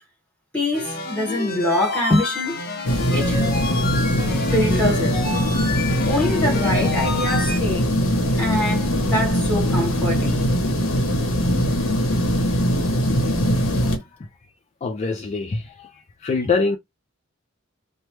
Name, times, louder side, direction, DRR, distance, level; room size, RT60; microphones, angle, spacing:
voice 1, 0.5-2.6 3.1-3.4 4.5-5.2 6.1-8.0 8.4-10.4, left 1 dB, 5° left, 1.7 m, -24 dB
sound 1, 0.7-7.6, left 3 dB, 50° left, 0.7 m, -29 dB
sound 2, 2.8-14.0, equal, 80° left, 0.9 m, -21 dB
voice 2, 14.8-16.8, left 4 dB, 35° left, 0.3 m, -24 dB
3.0 x 2.2 x 3.1 m
head